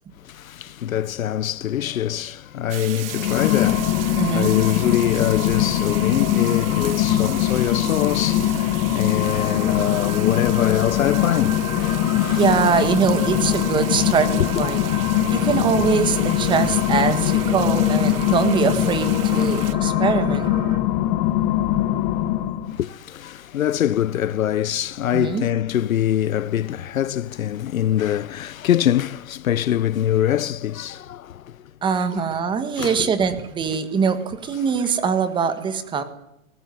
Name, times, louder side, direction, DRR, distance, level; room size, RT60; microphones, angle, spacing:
voice 1, 0.2-12.5 12.8-12.9 14.4-14.5 22.7-31.7 32.8-33.1 33.7-33.8, left 11 dB, 75° left, 1.0 m, -24 dB
sound 1, 2.7-19.7, right 13 dB, 45° right, 1.5 m, -37 dB
sound 2, 3.0-22.8, left 13 dB, 25° left, 1.6 m, -22 dB
voice 2, 4.2-4.5 12.3-14.8 15.3-20.5 25.1-25.4 31.8-36.0, right 6 dB, 10° right, 1.7 m, -22 dB
sound 3, 9.2-20.8, right 5 dB, 80° right, 5.6 m, -36 dB
29.0 x 19.5 x 9.5 m
hypercardioid pair, 160°, 41 cm